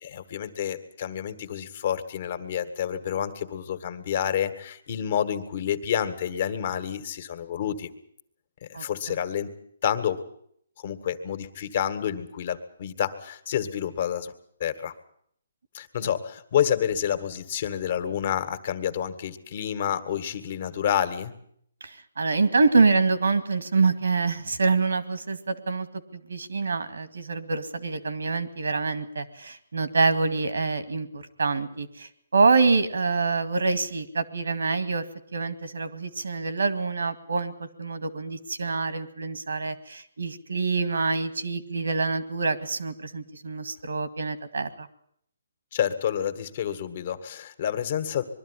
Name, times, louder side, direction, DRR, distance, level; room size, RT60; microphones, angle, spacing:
voice 1, 0.0-7.9 8.6-9.5 9.8-10.2 10.8-14.3 14.6-14.9 15.7-21.3 45.7-48.2, left 9 dB, 45° left, 10 dB, 1.9 m, -29 dB
voice 2, 21.8-25.9 26.1-35.0 35.3-44.9, right 4 dB, 85° right, 12 dB, 2.1 m, -26 dB
22.0 x 13.0 x 9.9 m, 0.66 s
hypercardioid pair, 160°, 0 cm